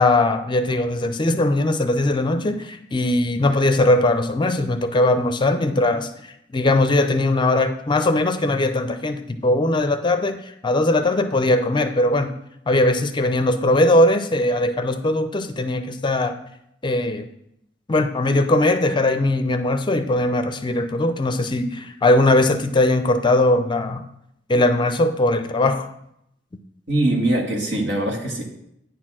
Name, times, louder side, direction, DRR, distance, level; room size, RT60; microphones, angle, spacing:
voice 1, 0.0-12.3 12.7-16.4 16.8-17.3 17.9-24.0 24.5-25.9, left 2 dB, 25° left, 9 dB, 0.5 m, -20 dB
voice 2, 26.9-28.4, right 1 dB, 75° right, 1 dB, 1.6 m, -22 dB
9.2 x 4.3 x 6.0 m, 0.77 s
head